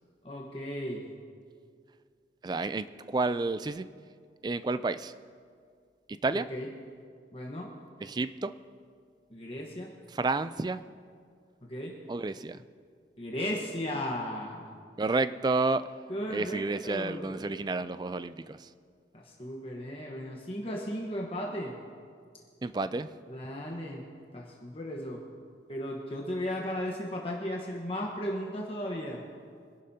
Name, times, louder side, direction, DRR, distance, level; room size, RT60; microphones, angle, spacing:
voice 1, 0.2-1.0 6.3-6.7 7.3-7.7 9.3-9.9 11.6-12.0 13.2-14.7 16.1-17.4 19.1-21.7 23.3-24.0 24.3-25.2 25.7-29.2, equal, 30° left, -2 dB, 1.2 m, -35 dB
voice 2, 2.4-3.9 4.4-5.1 6.2-6.5 8.0-8.5 10.1-10.8 12.1-12.6 15.0-15.9 16.3-18.7 22.6-23.1, right 3 dB, 25° right, 13 dB, 0.3 m, -30 dB
24.5 x 11.5 x 2.8 m, 2.1 s
head